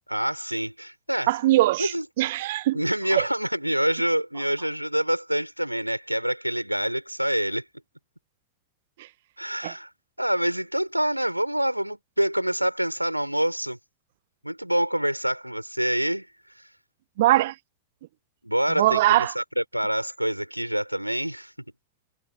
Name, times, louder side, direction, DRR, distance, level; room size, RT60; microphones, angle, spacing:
voice 1, 0.1-1.4 1.8-2.1 2.7-7.6 9.4-9.9 10.2-13.8 14.4-16.3 16.6-16.7 18.4-21.5, right 1 dB, 90° right, 5.2 m, -26 dB
voice 2, 1.3-2.8 3.1-3.2 9.6-9.7 17.2-17.5 18.8-19.3, right 16 dB, 55° right, 0.7 m, -21 dB
figure-of-eight pair, 90°, 0 cm